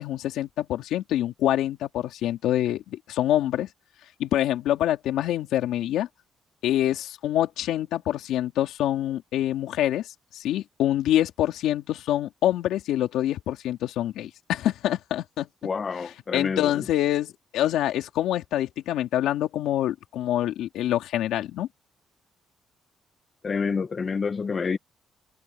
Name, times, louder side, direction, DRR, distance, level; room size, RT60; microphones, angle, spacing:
voice 1, 0.0-3.7 4.2-6.1 6.6-15.5 16.3-21.7, left 12 dB, 85° left, 2.8 m, -26 dB
voice 2, 15.6-16.8 23.4-24.8, left 5 dB, 40° left, 1.1 m, -28 dB
cardioid pair, 90°, 0 cm